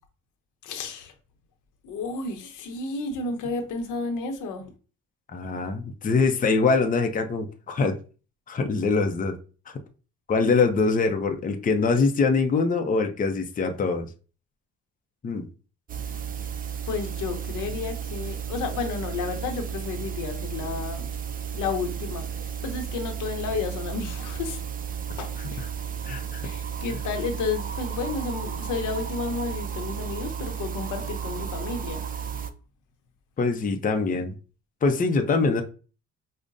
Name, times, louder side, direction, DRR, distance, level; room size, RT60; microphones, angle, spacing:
voice 1, 0.6-1.1 1.8-4.7 16.9-21.1 21.5-24.6 25.2-25.6 26.4-32.0, left 4 dB, 85° left, 0.8 m, -32 dB
voice 2, 5.3-8.0 8.5-9.4 9.7-9.8 10.3-14.1 15.2-15.5 26.0-26.5 33.4-34.3 34.8-35.6, left 4 dB, 30° left, 0.5 m, -23 dB
sound 1, 15.9-32.5, right 8 dB, 30° right, 0.4 m, -33 dB
4.9 x 2.1 x 2.6 m
cardioid pair, 90°, 30 cm